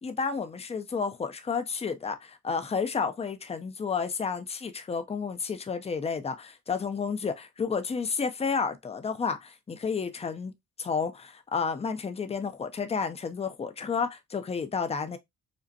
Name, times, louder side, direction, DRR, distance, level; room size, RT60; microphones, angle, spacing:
voice 1, 0.0-10.5 10.8-15.2, left 5 dB, 20° left, 0.5 m, -31 dB
5.1 x 2.1 x 2.7 m
cardioid pair, 90°, 30 cm